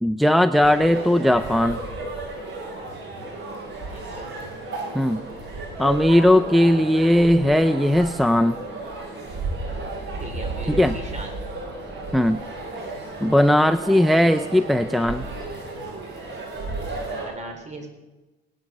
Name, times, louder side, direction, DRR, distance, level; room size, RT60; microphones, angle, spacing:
voice 1, 0.0-1.8 4.9-5.2 5.8-8.6 10.7-11.0 12.1-12.4 13.2-15.3, left 1 dB, ahead, 12 dB, 0.5 m, -18 dB
sound 1, 0.6-17.2, right 2 dB, 65° right, 6.7 m, -33 dB
voice 2, 3.9-4.3 10.1-11.3 17.2-17.9, right 2 dB, 35° right, 3 dB, 4.3 m, -37 dB
18.0 x 11.0 x 6.5 m, 1.1 s
cardioid pair, 90°, 20 cm